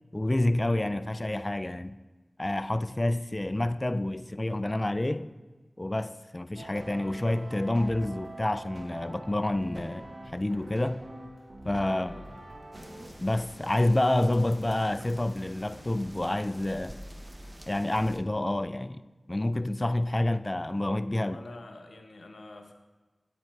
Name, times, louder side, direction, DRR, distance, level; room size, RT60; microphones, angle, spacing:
voice 1, 0.1-2.0 2.4-5.3 5.8-11.0 11.6-12.1 13.2-17.0 17.7-19.0 19.3-21.4, left 1 dB, 30° left, 0.3 m, -28 dB
sound 1, 6.6-13.1, right 1 dB, 85° right, 1.4 m, -44 dB
voice 2, 11.9-12.3 21.2-22.7, left 2 dB, 90° left, 0.7 m, -47 dB
sound 2, 12.7-18.2, equal, 15° right, 0.6 m, -47 dB
9.2 x 8.6 x 3.3 m
wide cardioid pair, 45°, 0 cm